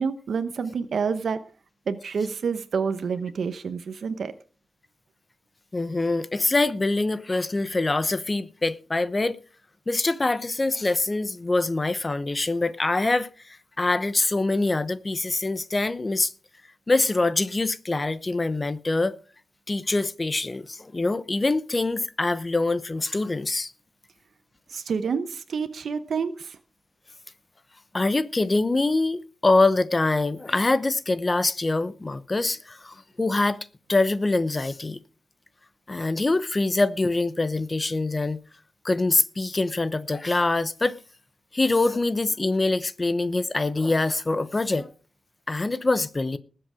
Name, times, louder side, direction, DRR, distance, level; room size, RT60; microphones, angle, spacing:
voice 1, 0.0-1.4 1.9-4.3 24.7-26.6, right 5 dB, 70° right, 0.9 m, -28 dB
voice 2, 5.7-9.4 9.9-16.3 16.9-19.2 19.7-23.7 27.9-33.6 33.9-35.0 35.9-38.4 38.8-41.0 41.5-44.9 45.5-46.4, left 2 dB, 25° left, 0.9 m, -24 dB
19.5 x 7.8 x 4.9 m
wide cardioid pair, 150°, 0 cm